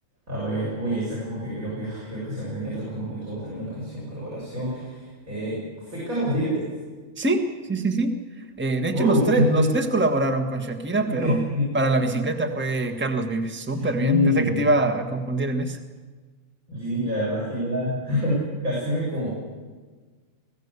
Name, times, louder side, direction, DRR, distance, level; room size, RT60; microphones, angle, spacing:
voice 1, 0.3-6.6 8.9-9.7 11.1-11.7 13.8-14.6 16.7-19.3, left 1 dB, 70° right, -6 dB, 7.2 m, -26 dB
voice 2, 7.2-8.2 8.6-11.4 11.7-15.8, right 2 dB, 10° right, 5 dB, 1.3 m, -24 dB
20.5 x 15.5 x 8.2 m, 1.4 s
omnidirectional pair, 1.5 m